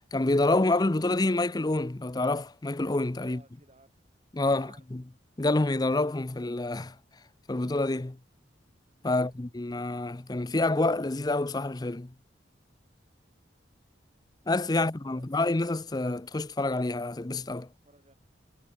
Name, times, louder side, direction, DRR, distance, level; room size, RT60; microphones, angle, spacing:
voice 1, 0.1-3.4 4.3-5.0 5.4-6.9 7.5-8.2 9.0-12.1 14.5-17.7, left 2 dB, 20° left, 0.6 m, -27 dB
voice 2, 3.2-4.0 4.4-4.8 8.9-9.4 14.7-15.3 17.6-18.1, right 2 dB, 35° right, 8.0 m, -58 dB
head